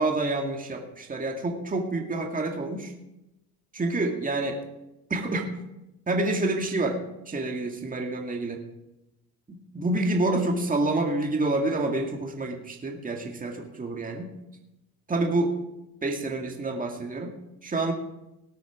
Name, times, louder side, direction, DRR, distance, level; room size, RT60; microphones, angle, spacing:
voice 1, 0.0-2.9 3.7-4.6 5.1-5.5 6.1-7.0 7.3-8.6 9.5-14.3 15.1-15.5 16.0-17.4 17.6-17.9, right 2 dB, 15° right, 2 dB, 2.1 m, -28 dB
18.5 x 8.3 x 5.0 m, 0.92 s
supercardioid pair, 95°, 49 cm